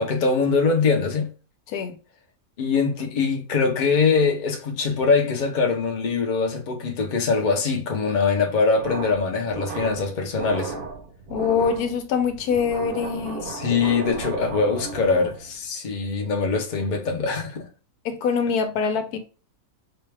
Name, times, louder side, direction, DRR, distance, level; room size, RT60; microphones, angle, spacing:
voice 1, 0.0-1.3 2.6-10.7 13.4-17.7, left 4 dB, 45° left, 0.6 m, -23 dB
sound 1, 8.7-15.6, right 4 dB, 50° right, 0.7 m, -34 dB
voice 2, 11.3-13.5 18.0-19.2, left 6 dB, 80° left, 1.1 m, -24 dB
4.2 x 2.2 x 3.3 m
omnidirectional pair, 1.6 m